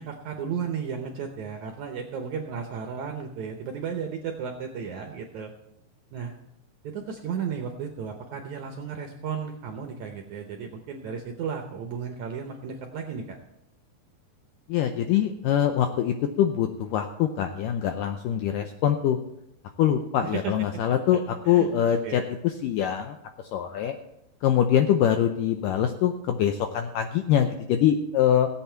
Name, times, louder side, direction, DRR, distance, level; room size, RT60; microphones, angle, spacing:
voice 1, 0.0-5.5 6.1-6.3 6.8-13.4 20.2-20.5 20.9-21.7 22.0-22.3, right 7 dB, 75° right, 4 dB, 1.8 m, -34 dB
voice 2, 14.7-19.2 19.8-21.2 21.5-23.2 23.5-23.9 24.4-28.5, left 10 dB, 80° left, 6 dB, 1.9 m, -24 dB
16.5 x 8.5 x 4.5 m, 0.80 s
omnidirectional pair, 4.5 m